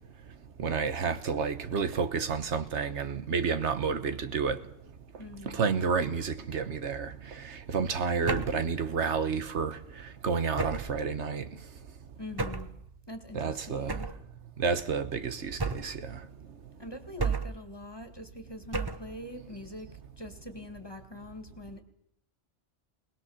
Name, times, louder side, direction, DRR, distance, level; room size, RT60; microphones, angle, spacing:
voice 1, 0.6-4.6 5.5-9.8 10.2-11.5 13.3-14.0 14.6-16.2, right 5 dB, 85° right, 1.4 m, -30 dB
voice 2, 5.2-5.6 12.2-12.7 13.1-14.1 16.8-19.9 20.2-21.8, left 1 dB, 20° left, 2.1 m, -43 dB
sound 1, 8.3-8.7 10.6-11.0 12.4-12.8 13.9-14.3 15.6-16.0 17.2-17.7 18.7-19.1, right 4 dB, 25° right, 0.8 m, -32 dB
20.5 x 20.5 x 7.2 m
omnidirectional pair, 1.2 m